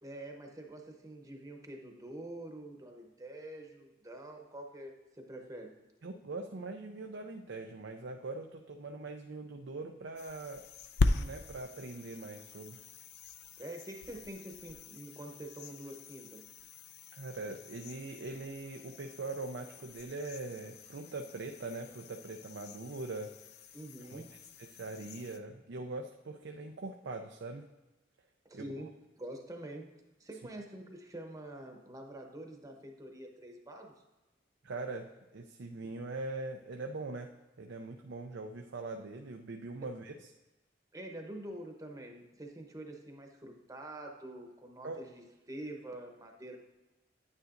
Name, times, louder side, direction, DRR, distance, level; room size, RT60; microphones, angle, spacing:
voice 1, 0.0-5.8 13.6-16.5 23.7-24.3 28.4-28.9 29.2-29.9 30.2-34.0 39.8-39.9 40.9-46.6, right 1 dB, 20° right, 2 dB, 0.9 m, -46 dB
voice 2, 6.0-10.6 11.1-12.8 17.1-23.3 24.0-24.2 24.6-27.6 28.5-28.6 34.6-37.3 37.6-40.1 44.8-45.0, right 3 dB, 70° right, 3 dB, 0.5 m, -42 dB
sound 1, 10.2-25.4, left 3 dB, 60° left, 0.4 m, -40 dB
9.7 x 9.2 x 2.5 m, 1.1 s
head